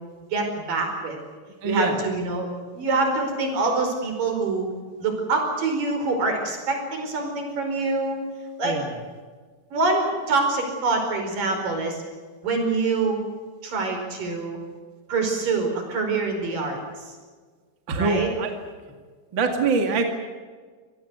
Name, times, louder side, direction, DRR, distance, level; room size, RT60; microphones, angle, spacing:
voice 1, 0.3-1.2 1.7-2.5 2.7-4.7 5.0-8.2 8.6-8.8 9.7-12.0 12.4-13.2 13.6-14.6 15.1-17.2 18.0-18.3, right 3 dB, 55° right, 4 dB, 6.3 m, -25 dB
voice 2, 1.6-2.0 8.6-8.9 17.9-18.5 19.3-20.1, right 4 dB, 35° right, 4 dB, 2.2 m, -24 dB
26.0 x 18.5 x 8.1 m, 1.5 s
omnidirectional pair, 4.7 m